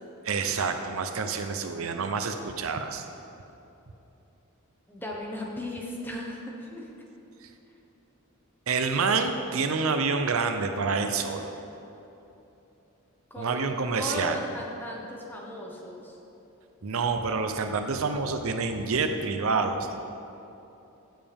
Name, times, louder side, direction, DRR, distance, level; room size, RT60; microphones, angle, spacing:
voice 1, 0.2-3.1 8.7-11.5 13.4-14.4 16.8-20.0, right 4 dB, 70° right, 7 dB, 0.6 m, -28 dB
voice 2, 4.9-6.9 13.3-16.2, left 1 dB, 10° left, -1 dB, 1.2 m, -36 dB
15.5 x 7.4 x 3.5 m, 2.9 s
head